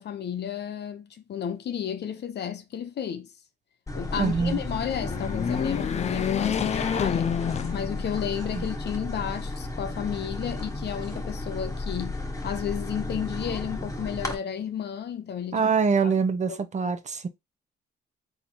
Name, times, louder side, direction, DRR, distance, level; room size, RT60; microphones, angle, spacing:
voice 1, 0.0-3.3 3.9-7.4 7.7-15.7 16.0-16.1 16.5-16.9, left 8 dB, 60° left, 0.8 m, -33 dB
sound 1, 3.9-14.3, left 2 dB, 15° left, 1.2 m, -33 dB
voice 2, 4.2-4.6 8.6-8.7 15.5-17.3, right 5 dB, 35° right, 0.7 m, -24 dB
sound 2, 4.8-8.4 8.9-9.0 10.0-10.8, left 8 dB, 35° left, 0.4 m, -29 dB
3.9 x 2.8 x 4.4 m
cardioid pair, 90°, 20 cm